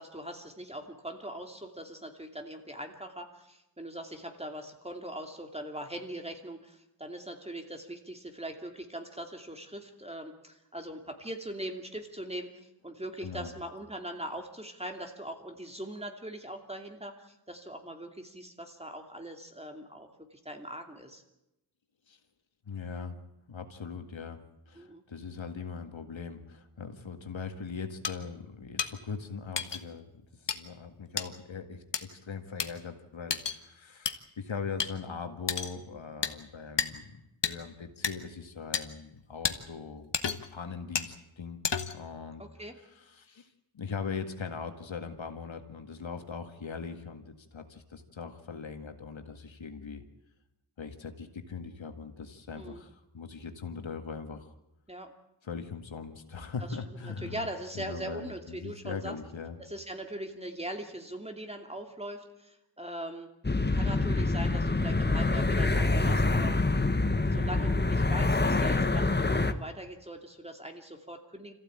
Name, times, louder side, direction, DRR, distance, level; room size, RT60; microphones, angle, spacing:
voice 1, 0.0-21.2 24.8-25.0 42.4-42.7 52.6-52.8 54.9-55.1 57.0-59.1 59.6-63.3 63.7-66.6 67.0-71.5, right 1 dB, 15° right, 4 dB, 2.7 m, -41 dB
voice 2, 13.2-13.6 22.1-22.2 22.7-23.2 23.5-37.1 37.4-40.2 40.5-41.6 41.9-42.4 42.9-50.0 50.8-54.5 55.4-57.5 57.7-59.6, left 5 dB, 85° left, 6 dB, 1.9 m, -40 dB
sound 1, 28.0-28.1 28.8-28.9 29.6-29.8 30.5-30.6 31.2-31.3 31.9-32.0 32.6-32.7 33.3-33.6 34.1-34.2 34.8-34.9 35.5-35.7 36.2-36.3 36.8-36.9 37.4-37.5 38.0-38.1 38.7-38.8 39.4-39.6 40.1-40.5 41.0-41.1 41.6-42.0, left 6 dB, 65° left, 1.4 m, -30 dB
sound 2, 63.4-69.5, left 2 dB, 25° left, 1.1 m, -26 dB
26.0 x 15.0 x 8.8 m, 0.90 s
wide cardioid pair, 85°, 45 cm